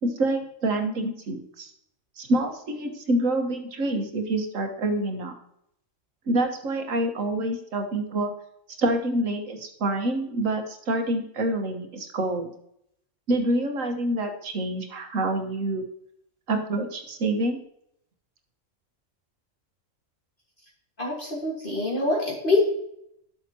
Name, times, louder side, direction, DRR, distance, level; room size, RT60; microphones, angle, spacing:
voice 1, 0.0-1.7 2.2-5.4 6.3-8.3 8.8-12.5 13.3-15.8 16.5-17.6, right 1 dB, 75° right, 5 dB, 1.6 m, -27 dB
voice 2, 21.0-22.6, left 2 dB, 40° left, -3 dB, 2.0 m, -24 dB
12.0 x 6.5 x 2.9 m, 0.73 s
omnidirectional pair, 1.4 m